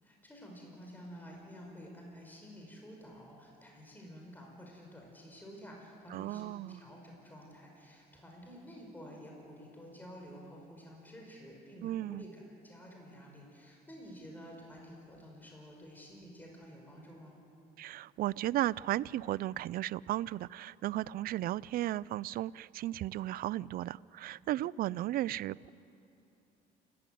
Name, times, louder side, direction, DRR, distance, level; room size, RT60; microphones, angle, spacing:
voice 1, 0.0-17.3, equal, 10° left, -1 dB, 5.4 m, -51 dB
voice 2, 6.1-6.8 11.8-12.3 17.8-25.7, right 14 dB, 60° right, 22 dB, 0.4 m, -35 dB
29.0 x 14.5 x 9.3 m, 2.9 s
cardioid pair, 110°, 17 cm